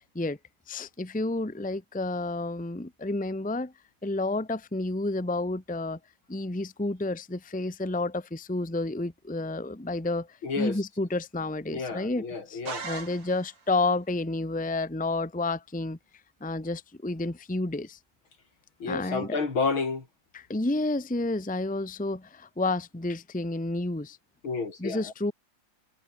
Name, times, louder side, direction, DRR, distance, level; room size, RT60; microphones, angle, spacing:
voice 1, 0.7-3.7 4.0-6.0 6.3-16.0 16.4-18.0 18.9-19.4 20.3-24.2 24.8-25.3, left 2 dB, 5° left, 1.2 m, -30 dB
voice 2, 10.4-10.8 11.7-12.9 18.8-20.0 24.4-25.1, left 4 dB, 70° left, 4.4 m, -30 dB
sound 1, 12.7-13.7, right 5 dB, 90° right, 4.3 m, -38 dB
omnidirectional pair, 2.3 m